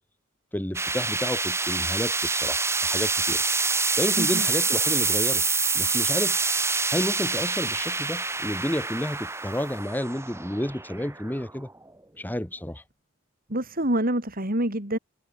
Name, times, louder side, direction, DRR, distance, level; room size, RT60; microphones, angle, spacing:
voice 1, 0.5-3.4 4.0-5.4 5.7-6.4 6.9-11.7 12.2-12.8, left 1 dB, 10° left, 1.3 m, -30 dB
sound 1, 0.7-11.9, right 4 dB, 15° right, 2.1 m, -26 dB
voice 2, 13.5-15.0, right 1 dB, 45° right, 5.6 m, -26 dB
head